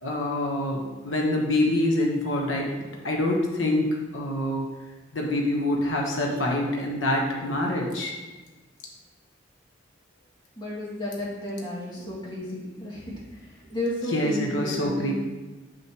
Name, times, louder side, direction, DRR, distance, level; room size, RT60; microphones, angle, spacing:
voice 1, 0.0-4.7 5.1-8.1 14.1-15.1, left 1 dB, 85° left, -1 dB, 1.2 m, -26 dB
voice 2, 10.6-15.1, left 1 dB, 25° left, -7 dB, 2.2 m, -33 dB
6.5 x 6.2 x 3.0 m, 1.2 s
head